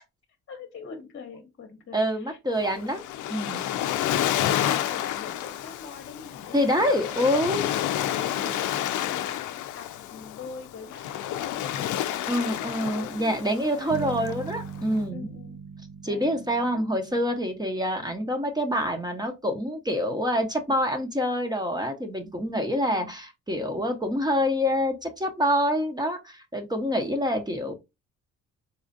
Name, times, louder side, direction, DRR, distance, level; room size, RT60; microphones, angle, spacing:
voice 1, 0.5-3.0 3.8-7.3 7.9-13.4 13.7-14.3 15.1-15.6 16.0-16.3 16.7-16.8 22.8-23.1 26.7-26.9, left 5 dB, 40° left, 0.9 m, -43 dB
voice 2, 1.9-3.0 3.3-3.6 6.5-7.7 12.3-15.3 16.0-27.7, equal, 15° right, 0.8 m, -26 dB
Waves surf, 2.6-15.0, left 12 dB, 80° left, 0.5 m, -30 dB
sound 1, 13.9-17.9, right 6 dB, 70° right, 0.5 m, -39 dB
4.2 x 2.4 x 2.5 m
cardioid pair, 90°, 30 cm